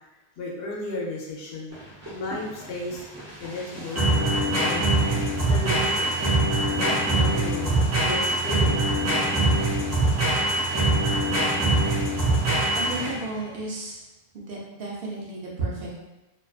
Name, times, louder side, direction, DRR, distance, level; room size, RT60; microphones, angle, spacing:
voice 1, 0.4-1.8 2.1-3.0 3.4-6.1 6.8-8.9, left 2 dB, 70° left, -2 dB, 0.8 m, -34 dB
sound 1, 1.7-13.3, right 2 dB, 20° right, 0.5 m, -23 dB
voice 2, 12.7-14.0 14.3-15.9, right 2 dB, 65° right, -4 dB, 0.8 m, -33 dB
2.5 x 2.3 x 2.3 m, 1.0 s
omnidirectional pair, 1.1 m